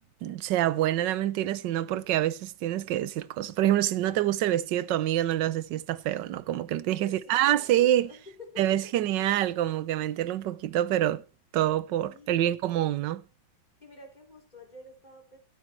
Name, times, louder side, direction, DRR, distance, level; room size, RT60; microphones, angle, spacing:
voice 1, 0.2-8.1 8.6-11.2 11.5-13.2, right 12 dB, 70° right, 1.4 m, -26 dB
voice 2, 7.0-8.9 12.1-12.9 13.8-15.4, left 2 dB, 20° left, 4.2 m, -50 dB
15.5 x 8.3 x 4.6 m
omnidirectional pair, 2.1 m